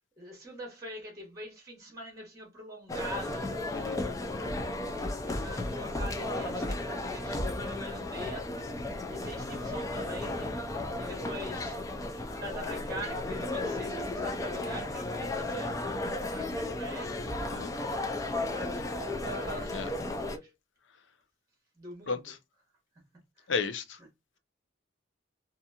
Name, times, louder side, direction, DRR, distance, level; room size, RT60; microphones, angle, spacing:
voice 1, 0.2-3.8 5.2-8.5 9.1-10.5 11.0-11.8 12.4-15.7 16.2-17.4 18.5-20.5 21.8-22.2 23.4-23.5, right 1 dB, 15° right, 1.0 m, -43 dB
sound 1, 2.9-20.4, left 2 dB, 15° left, 0.3 m, -34 dB
voice 2, 23.5-24.0, left 5 dB, 70° left, 0.5 m, -33 dB
2.8 x 2.5 x 2.2 m
head